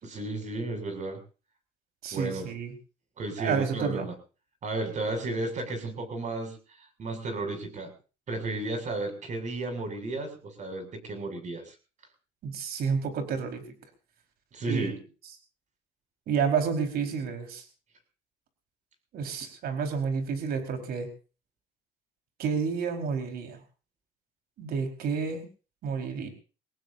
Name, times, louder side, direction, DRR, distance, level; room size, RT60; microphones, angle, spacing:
voice 1, 0.0-1.2 2.1-2.5 3.2-4.1 4.6-7.9 8.3-11.8 14.5-15.0, right 2 dB, 45° right, 6 dB, 7.1 m, -33 dB
voice 2, 2.0-2.7 3.4-4.1 12.4-13.6 14.6-14.9 16.3-17.6 19.1-21.1 22.4-23.6 24.6-25.5 25.8-26.3, right 6 dB, 60° right, 5 dB, 4.7 m, -30 dB
24.0 x 18.5 x 2.7 m, 0.36 s
cardioid pair, 110°, 18 cm